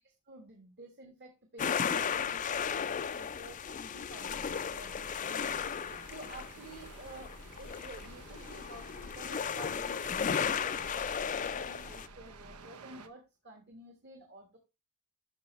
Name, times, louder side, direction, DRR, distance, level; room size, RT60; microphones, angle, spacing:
voice 1, 0.0-7.3 7.6-14.6, right 1 dB, 50° right, 3 dB, 1.4 m, -51 dB
sound 1, 1.6-12.1, left 7 dB, 35° left, 0.4 m, -35 dB
sound 2, 4.1-13.1, right 5 dB, 85° right, 0.8 m, -53 dB
sound 3, 4.3-12.6, left 1 dB, 85° left, 1.0 m, -54 dB
12.5 x 4.3 x 3.1 m, 0.26 s
head